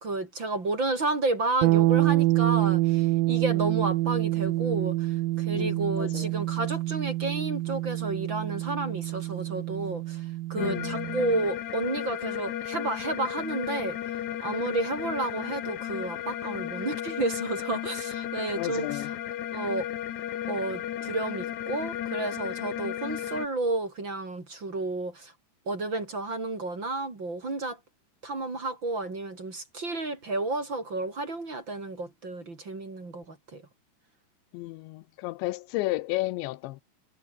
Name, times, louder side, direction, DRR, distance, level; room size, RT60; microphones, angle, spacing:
voice 1, 0.0-10.2 10.5-14.0 14.4-19.0 19.5-19.9 20.5-25.3 25.7-27.8 28.2-33.6, right 2 dB, 30° right, 4.0 m, -31 dB
sound 1, 1.6-11.4, right 18 dB, 85° right, 2.0 m, -27 dB
voice 2, 5.5-6.3 10.6-10.9 18.6-19.1 34.5-36.8, left 19 dB, 85° left, 3.1 m, -32 dB
sound 2, 10.6-23.5, left 11 dB, 60° left, 2.0 m, -34 dB
omnidirectional pair, 5.1 m